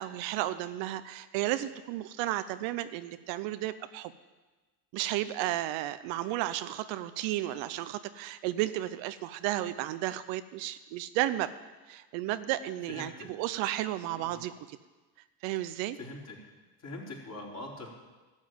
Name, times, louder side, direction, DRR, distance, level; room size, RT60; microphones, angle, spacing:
voice 1, 0.0-4.1 4.9-11.5 11.9-14.8 15.4-16.0, right 14 dB, 65° right, 12 dB, 0.8 m, -33 dB
voice 2, 12.9-13.3 14.1-14.4 15.9-16.4 16.8-17.9, left 2 dB, 35° left, -2 dB, 4.1 m, -43 dB
12.5 x 7.5 x 9.0 m, 1.2 s
hypercardioid pair, 80°, 48 cm